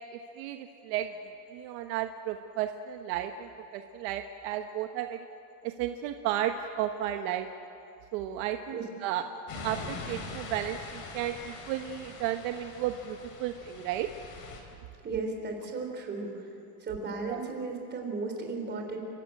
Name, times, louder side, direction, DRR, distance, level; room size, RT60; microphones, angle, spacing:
voice 1, 0.1-1.1 1.5-5.3 5.6-7.5 8.1-9.2 9.6-14.1 17.2-17.4, right 11 dB, 70° right, 7 dB, 1.2 m, -33 dB
sound 1, 9.5-14.6, left 3 dB, 45° left, 3.8 m, -43 dB
voice 2, 15.0-16.5 16.8-19.0, right 3 dB, 20° right, 3 dB, 3.4 m, -35 dB
30.0 x 13.5 x 8.9 m, 2.7 s
cardioid pair, 170°, 48 cm